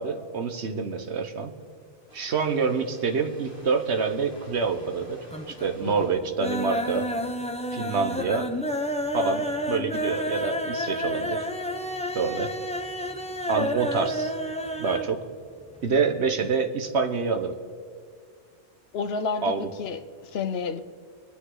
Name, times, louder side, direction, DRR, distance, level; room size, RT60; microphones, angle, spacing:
voice 1, 0.0-1.5 2.1-5.2 5.5-7.1 7.7-8.5 9.1-11.5 12.1-12.5 13.5-14.3 14.8-15.2 15.8-17.5 19.4-19.7, right 5 dB, 70° right, 1.4 m, -27 dB
sound 1, 2.1-6.2, left 1 dB, 90° right, 5.2 m, -51 dB
sound 2, 4.3-5.0 5.3-5.8 6.1-15.1 15.4-15.5 15.8-15.9, equal, 5° left, 0.6 m, -30 dB
voice 2, 18.9-19.5 19.8-20.8, left 5 dB, 65° left, 1.0 m, -30 dB
25.0 x 9.6 x 3.9 m
omnidirectional pair, 1.2 m